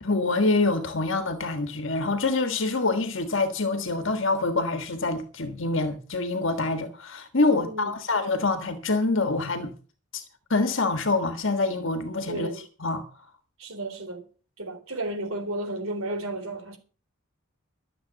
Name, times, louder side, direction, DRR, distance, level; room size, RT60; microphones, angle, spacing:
voice 1, 0.0-9.7 10.1-10.2 10.5-12.5 12.8-13.0, left 3 dB, 60° left, 1.5 m, -26 dB
voice 2, 7.5-8.0 12.3-12.6 13.6-14.3 14.6-16.8, right 2 dB, 75° right, 3.9 m, -33 dB
13.0 x 7.5 x 7.8 m
head